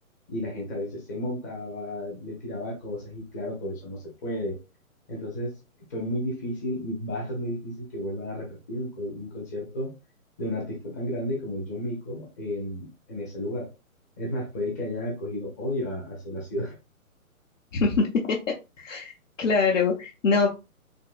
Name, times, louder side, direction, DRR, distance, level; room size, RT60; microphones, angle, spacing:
voice 1, 0.3-4.6 5.1-5.5 5.9-9.9 10.4-13.7 14.2-16.7, left 1 dB, 15° left, -1 dB, 0.5 m, -32 dB
voice 2, 17.7-18.4 18.8-19.1 19.4-20.5, left 4 dB, 60° left, -1 dB, 0.9 m, -23 dB
3.6 x 2.7 x 2.3 m, 0.28 s
figure-of-eight pair, 135°, 43 cm